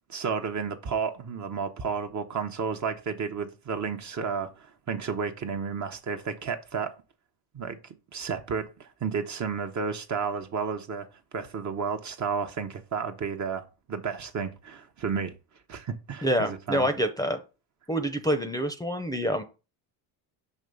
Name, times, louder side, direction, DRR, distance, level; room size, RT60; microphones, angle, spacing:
voice 1, 0.1-6.9 7.5-11.1 11.3-15.3 15.7-16.9, right 6 dB, 35° right, 0.9 m, -32 dB
voice 2, 16.2-17.4 17.9-19.4, equal, 10° left, 0.7 m, -27 dB
6.3 x 3.0 x 5.3 m
supercardioid pair, 75°, 49 cm